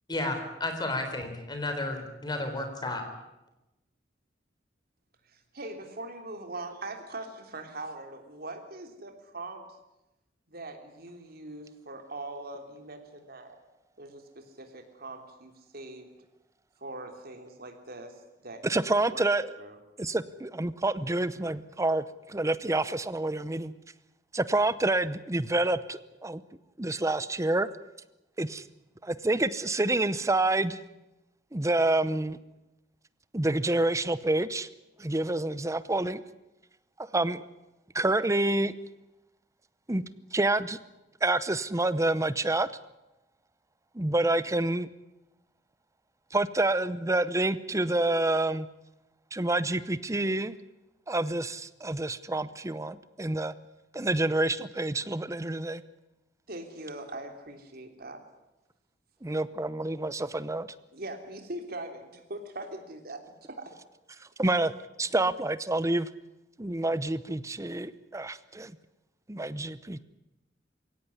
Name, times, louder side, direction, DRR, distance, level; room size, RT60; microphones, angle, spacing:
voice 1, 0.1-3.0, left 2 dB, 25° left, 6 dB, 4.0 m, -32 dB
voice 2, 5.3-9.6 10.5-13.6 14.0-16.1 16.8-18.1 18.4-19.2 19.6-19.8 56.5-58.2 60.9-63.2 63.5-63.8 65.3-65.4, right 2 dB, 55° right, 5 dB, 3.4 m, -41 dB
voice 3, 18.6-19.5 20.0-23.7 24.3-26.4 26.8-27.7 28.4-28.6 29.0-30.8 31.5-32.4 33.3-34.7 35.0-36.2 37.0-37.4 37.9-38.8 39.9-40.0 40.3-40.8 41.2-42.7 43.9-44.9 46.3-48.7 49.3-50.6 51.1-53.5 53.9-55.8 59.2-60.7 64.4-64.7 65.0-66.1 66.6-68.7 69.3-70.0, right 2 dB, 15° right, 15 dB, 0.8 m, -28 dB
22.5 x 17.0 x 9.8 m, 0.96 s
head